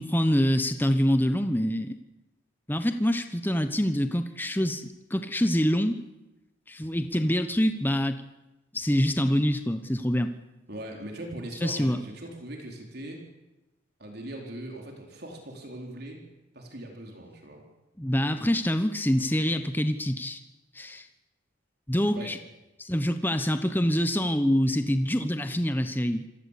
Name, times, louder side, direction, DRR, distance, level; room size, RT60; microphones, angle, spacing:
voice 1, 0.0-2.0 2.7-6.0 6.7-8.2 8.7-10.3 11.6-12.0 18.0-20.4 20.7-21.1 21.9-22.4 22.8-26.3, equal, 10° left, 9 dB, 1.0 m, -25 dB
voice 2, 10.7-13.2 14.0-16.2 16.5-17.6 22.1-22.3, right 1 dB, 50° right, 1 dB, 4.4 m, -40 dB
26.5 x 18.0 x 8.5 m, 1.0 s
head